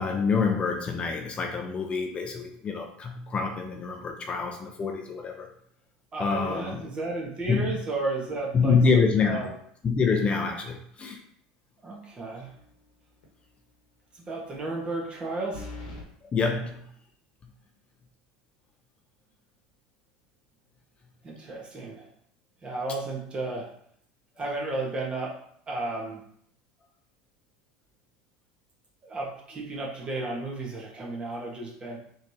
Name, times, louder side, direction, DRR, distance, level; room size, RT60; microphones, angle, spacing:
voice 1, 0.0-5.5 6.2-6.8 7.5-7.7 8.5-9.5 9.8-11.2 16.3-16.8, left 5 dB, 30° left, 3 dB, 0.6 m, -26 dB
voice 2, 6.1-9.5 11.8-12.5 14.1-15.7 21.2-22.1 22.6-23.7 24.4-25.3 25.7-26.2 29.0-32.0, right 2 dB, 30° right, -2 dB, 1.3 m, -33 dB
sound 1, 12.4-12.9 13.2-13.3 15.5-16.1, left 3 dB, 80° left, 1.1 m, -41 dB
4.2 x 3.2 x 2.8 m, 0.67 s
hypercardioid pair, 90°, 4 cm